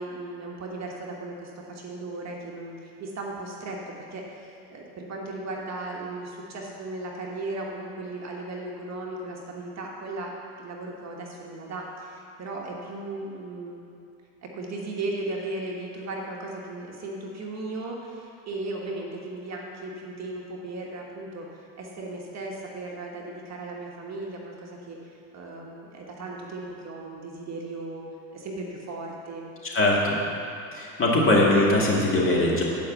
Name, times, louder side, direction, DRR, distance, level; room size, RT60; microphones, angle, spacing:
voice 1, 0.0-3.8 4.1-10.3 10.6-13.9 14.4-28.0 28.3-29.5, right 2 dB, 35° right, -2 dB, 1.4 m, -36 dB
voice 2, 29.6-30.2 30.7-32.6, left 1 dB, 25° left, -4 dB, 2.2 m, -21 dB
10.0 x 5.4 x 7.3 m, 2.6 s
supercardioid pair, 115°, 46 cm